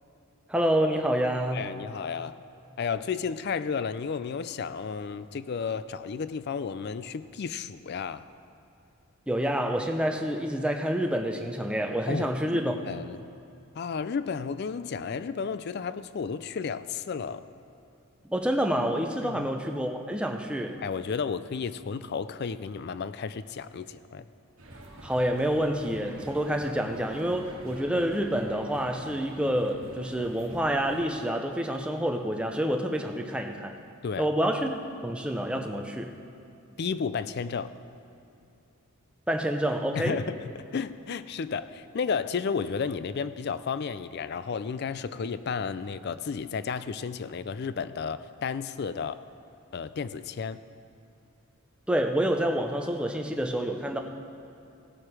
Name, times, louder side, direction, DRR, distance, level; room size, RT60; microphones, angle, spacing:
voice 1, 0.5-1.7 9.3-12.7 18.2-20.8 25.0-33.7 34.2-34.7 35.0-36.2 39.3-40.2 51.9-54.0, equal, 5° right, 3 dB, 0.6 m, -28 dB
voice 2, 1.5-2.4 2.8-8.3 12.1-12.6 12.9-13.3 13.8-17.4 19.2-19.5 20.8-24.2 34.0-34.3 36.8-37.7 39.9-49.2 49.7-50.6, left 5 dB, 50° left, 14 dB, 0.4 m, -32 dB
sound 1, 24.6-31.1, right 1 dB, 60° right, 1.5 m, -47 dB
17.0 x 7.5 x 4.8 m, 2.7 s
head